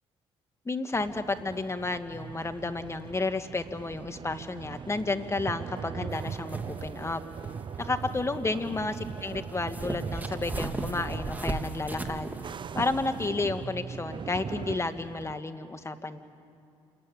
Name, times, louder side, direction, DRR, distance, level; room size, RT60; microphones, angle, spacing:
voice 1, 0.7-7.2 7.8-12.3 12.7-16.2, left 3 dB, 25° left, 9 dB, 1.8 m, -31 dB
sound 1, 0.9-15.4, right 6 dB, 45° right, 0.6 m, -40 dB
sound 2, 6.1-13.3, right 2 dB, 15° right, 2.1 m, -38 dB
28.0 x 21.0 x 9.5 m, 2.6 s
supercardioid pair, 70°, 12 cm